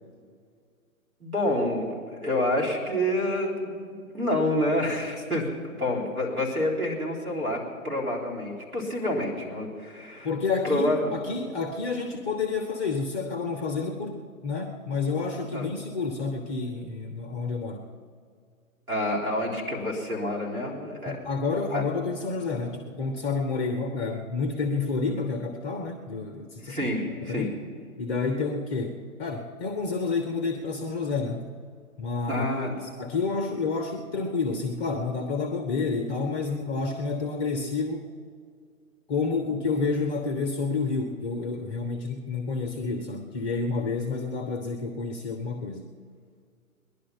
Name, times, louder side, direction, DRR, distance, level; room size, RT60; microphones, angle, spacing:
voice 1, 1.2-10.3 10.6-11.2 15.5-15.7 18.9-21.2 21.7-21.8 26.6-27.5 32.3-32.7 39.5-39.6, left 1 dB, 85° right, -2 dB, 3.8 m, -28 dB
voice 2, 10.2-17.8 21.1-26.8 27.2-27.6 28.0-31.5 32.0-38.1 39.1-45.9, left 4 dB, 10° left, 5 dB, 0.5 m, -29 dB
19.5 x 11.0 x 5.7 m, 2.2 s
figure-of-eight pair, 125°, 42 cm